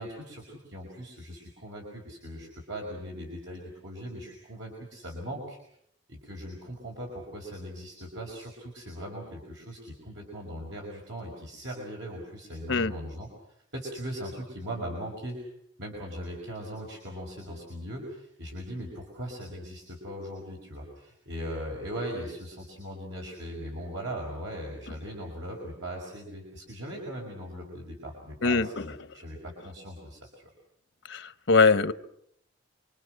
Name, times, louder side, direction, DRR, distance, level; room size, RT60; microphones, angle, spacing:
voice 1, 0.0-5.6 6.1-13.3 13.7-15.4 15.8-30.5, equal, 75° right, -1 dB, 5.7 m, -39 dB
voice 2, 31.5-31.9, left 4 dB, 85° left, 13 dB, 1.0 m, -20 dB
27.5 x 24.5 x 6.6 m, 0.71 s
head